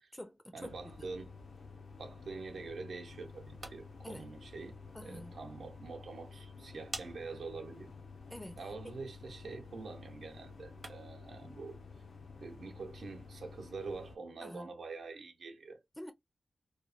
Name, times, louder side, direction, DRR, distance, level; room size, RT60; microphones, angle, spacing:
voice 1, 0.0-1.1 4.0-4.3 4.9-5.4 8.3-8.6 8.8-8.9 14.4-14.7 16.0-16.1, left 1 dB, 5° left, 0.4 m, -47 dB
voice 2, 0.5-1.3 2.0-7.9 8.6-11.8 12.4-15.8, right 4 dB, 80° right, 0.8 m, -45 dB
sound 1, 0.6-14.2, left 4 dB, 70° left, 0.5 m, -51 dB
sound 2, 3.3-11.3, right 3 dB, 40° right, 0.6 m, -53 dB
3.0 x 2.1 x 2.5 m
wide cardioid pair, 150°, 0 cm